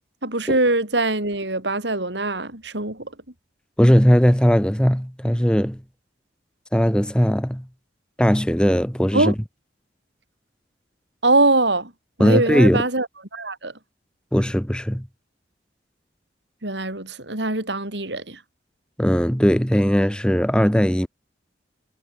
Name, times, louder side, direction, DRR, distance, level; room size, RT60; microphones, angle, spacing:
voice 1, 0.2-3.1 9.1-9.3 11.2-11.9 12.2-13.1 13.3-13.7 16.6-18.4, right 2 dB, 75° right, 5.6 m, -22 dB
voice 2, 3.8-5.8 6.7-7.6 8.2-9.3 12.2-12.8 14.3-15.1 19.0-21.1, equal, 5° left, 1.7 m, -18 dB
head